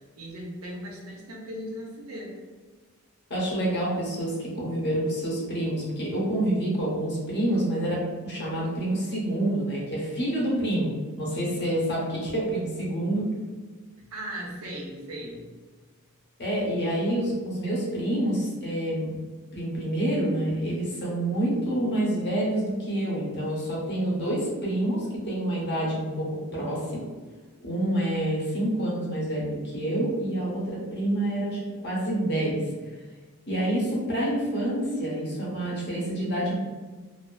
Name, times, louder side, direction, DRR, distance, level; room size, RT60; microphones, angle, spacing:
voice 1, 0.0-2.4 14.1-15.5, equal, 70° right, -2 dB, 0.7 m, -38 dB
voice 2, 3.3-10.9 11.2-13.3 16.4-19.2 19.5-27.0 27.6-33.0 33.5-36.5, right 1 dB, 50° left, -5 dB, 0.8 m, -27 dB
2.5 x 2.4 x 2.2 m, 1.4 s
head